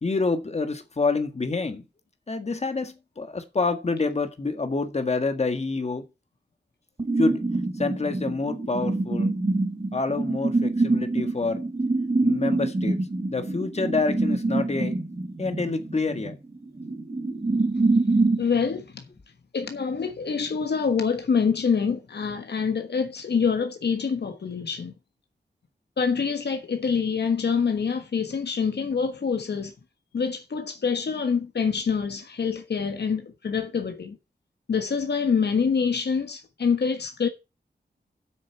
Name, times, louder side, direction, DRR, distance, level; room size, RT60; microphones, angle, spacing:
voice 1, 0.0-1.8 2.3-6.0 7.2-7.4 7.8-9.3 9.9-11.6 12.2-13.0 13.3-15.0 15.4-16.4, left 3 dB, 40° left, 1.7 m, -27 dB
sound 1, 7.0-18.4, right 2 dB, 35° right, 3.6 m, -25 dB
voice 2, 18.4-19.0 19.5-24.9 26.0-29.7 30.1-34.2 34.7-37.3, left 6 dB, 75° left, 1.4 m, -26 dB
8.2 x 6.4 x 7.1 m
wide cardioid pair, 125°, 18 cm